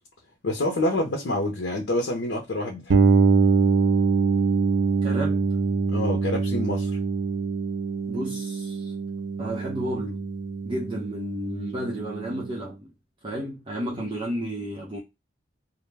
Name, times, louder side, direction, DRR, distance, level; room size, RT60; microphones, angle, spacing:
voice 1, 0.4-3.0 5.9-7.0, left 1 dB, 80° left, 0.6 m, -27 dB
sound 1, 2.9-12.6, right 4 dB, 75° right, 0.5 m, -24 dB
voice 2, 5.0-5.5 8.1-8.9 9.4-10.2 10.6-12.8 13.2-15.0, right 1 dB, 30° right, 0.6 m, -32 dB
2.4 x 2.1 x 3.2 m
head